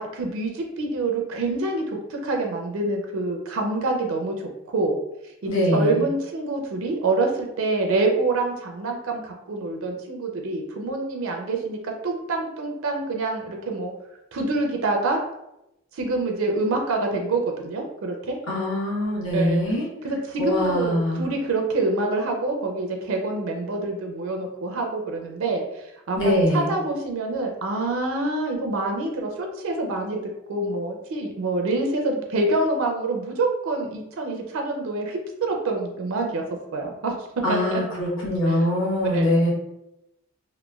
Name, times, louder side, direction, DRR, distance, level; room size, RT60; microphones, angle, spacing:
voice 1, 0.0-1.8 2.1-4.3 4.7-5.0 5.4-13.9 14.3-15.2 15.9-18.4 19.3-19.6 20.0-30.2 30.5-36.4 36.7-37.1 37.5-37.8 38.5-38.7 39.0-39.3, right 2 dB, 70° right, 2 dB, 0.4 m, -26 dB
voice 2, 5.5-6.0 18.5-19.8 20.4-21.2 26.2-26.7 37.4-39.5, left 1 dB, 60° left, -5 dB, 0.9 m, -23 dB
3.0 x 2.2 x 2.3 m, 0.87 s
head